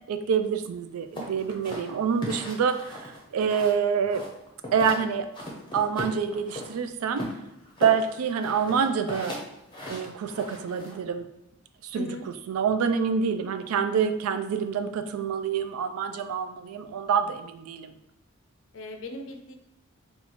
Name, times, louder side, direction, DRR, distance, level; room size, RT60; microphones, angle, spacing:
voice 1, 0.1-4.2 4.7-5.3 5.7-7.2 7.8-9.4 9.9-11.3 11.8-12.2 12.5-17.9, right 6 dB, 90° right, 9 dB, 0.3 m, -27 dB
sound 1, 1.1-3.8 4.1-5.0 5.3-6.7 7.1-11.0, left 1 dB, 20° left, 0.6 m, -37 dB
voice 2, 11.9-12.2 18.7-19.5, left 1 dB, 65° left, 5 dB, 0.4 m, -37 dB
2.9 x 2.3 x 4.0 m, 0.88 s
head